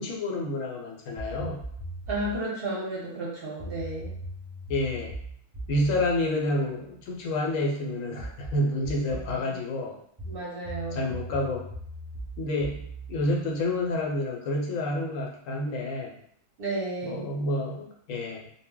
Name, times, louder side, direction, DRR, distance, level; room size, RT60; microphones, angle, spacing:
voice 1, 0.0-1.6 4.7-5.1 5.7-10.0 10.9-11.7 12.4-16.2 17.0-18.5, left 1 dB, 75° left, 0 dB, 1.0 m, -29 dB
sound 1, 1.2-2.5 3.6-7.3 8.2-9.4 10.2-14.1, right 1 dB, 15° right, 0.7 m, -39 dB
voice 2, 2.1-4.1 9.1-9.6 10.3-11.1 16.6-17.3, right 2 dB, 55° right, -4 dB, 0.7 m, -33 dB
2.1 x 2.0 x 3.6 m, 0.67 s
omnidirectional pair, 1.4 m